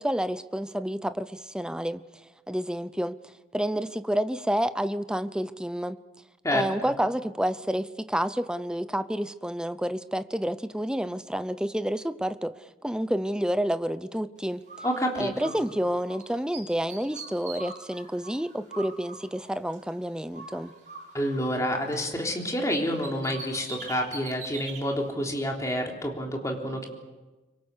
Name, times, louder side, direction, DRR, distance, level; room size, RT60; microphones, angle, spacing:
voice 1, 0.0-2.0 2.5-3.2 3.5-6.0 6.5-14.6 15.2-20.7, equal, 5° right, 13 dB, 0.7 m, -29 dB
voice 2, 6.4-6.9 14.8-15.3 21.1-26.9, equal, 20° left, 1 dB, 3.6 m, -28 dB
Bird, 14.7-16.2 16.5-20.0 20.3-22.4 22.7-24.8, right 4 dB, 50° right, 7.6 m, -43 dB
25.5 x 24.5 x 6.8 m, 1.2 s
head